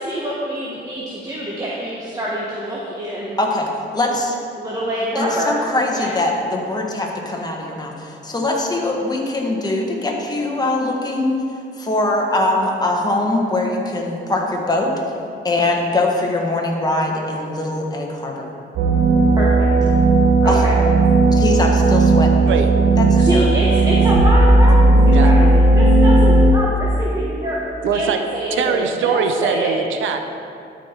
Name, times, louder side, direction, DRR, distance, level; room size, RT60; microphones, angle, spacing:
voice 1, 0.0-3.4 4.6-5.5 5.9-6.1 19.4-19.7 20.4-20.7 23.2-24.7 25.0-27.6 27.9-29.7, equal, 20° right, -6 dB, 1.4 m, -25 dB
voice 2, 3.4-4.4 5.1-11.4 11.8-14.9 15.4-18.5 20.4-20.6 21.3-22.5 23.0-23.5, left 2 dB, 20° left, 0 dB, 1.5 m, -22 dB
sound 1, 18.8-26.5, right 2 dB, 60° right, 1.2 m, -14 dB
voice 3, 27.8-28.2 28.5-30.2, right 7 dB, 80° right, 7 dB, 0.7 m, -22 dB
12.0 x 5.3 x 4.6 m, 2.5 s
cardioid pair, 90°, 20 cm